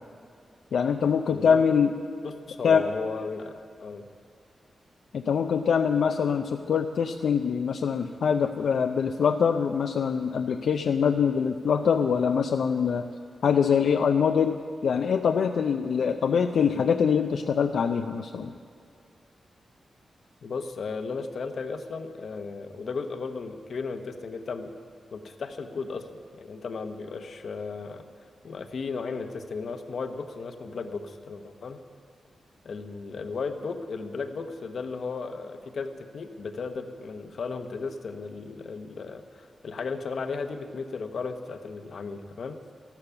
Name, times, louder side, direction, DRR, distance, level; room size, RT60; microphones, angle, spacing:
voice 1, 0.7-1.9 2.6-2.9 5.1-13.0 13.4-14.6 14.8-18.5, left 6 dB, 75° left, 5 dB, 0.5 m, -24 dB
voice 2, 1.3-1.6 2.2-4.1 16.6-16.8 20.4-24.8 25.1-28.0 28.4-31.8 32.6-42.6, left 4 dB, 55° left, 8 dB, 1.0 m, -35 dB
14.5 x 12.0 x 7.1 m, 2.3 s
wide cardioid pair, 160°, 0 cm